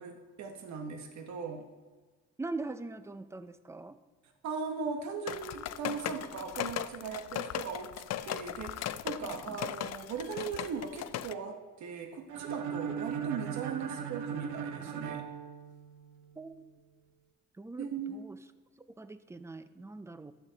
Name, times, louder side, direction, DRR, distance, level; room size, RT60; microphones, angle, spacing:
voice 1, 0.0-1.6 4.4-15.2 17.8-18.4, right 5 dB, 65° right, 4 dB, 1.1 m, -39 dB
voice 2, 2.4-4.0 9.2-9.6 16.4-16.7 17.6-18.4 18.8-20.3, right 3 dB, 10° right, 12 dB, 0.5 m, -42 dB
sound 1, 5.3-11.3, left 11 dB, 60° left, 0.5 m, -38 dB
sound 2, 12.3-16.2, right 8 dB, 85° right, 0.8 m, -38 dB
12.5 x 7.3 x 4.0 m, 1.3 s
cardioid pair, 90°, 30 cm